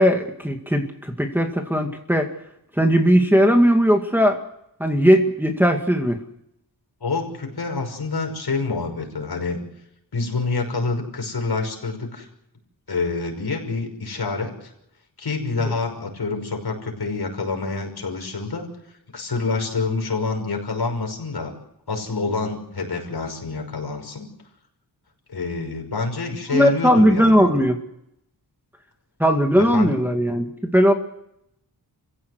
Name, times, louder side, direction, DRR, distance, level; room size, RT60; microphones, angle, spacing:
voice 1, 0.0-2.3 2.8-4.4 4.8-6.2 15.6-15.7 26.5-27.8 29.2-30.9, equal, 5° right, 2 dB, 2.1 m, -18 dB
voice 2, 7.0-9.6 10.1-12.3 12.9-14.7 15.2-18.7 19.1-21.5 21.9-24.3 25.3-27.5 29.6-30.0, left 3 dB, 65° left, 3 dB, 5.8 m, -27 dB
29.5 x 16.0 x 8.0 m, 0.80 s
wide cardioid pair, 130°, 41 cm